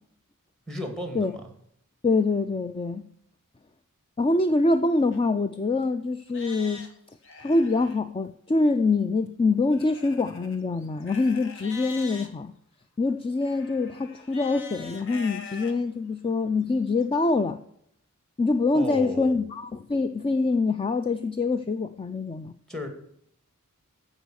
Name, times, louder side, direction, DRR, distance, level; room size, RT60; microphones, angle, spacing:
voice 1, 0.7-1.5 18.7-19.5 22.7-22.9, left 1 dB, 5° left, 2.2 m, -34 dB
voice 2, 2.0-3.0 4.2-6.9 7.4-12.5 13.0-17.6 18.4-22.6, left 3 dB, 25° left, 0.4 m, -25 dB
Livestock farm animals working animals, 5.1-5.2 5.8-5.9 6.3-8.0 9.7-12.3 13.4-15.7 16.3-16.4 17.0-17.1, left 4 dB, 60° left, 1.6 m, -43 dB
15.0 x 5.6 x 6.3 m
head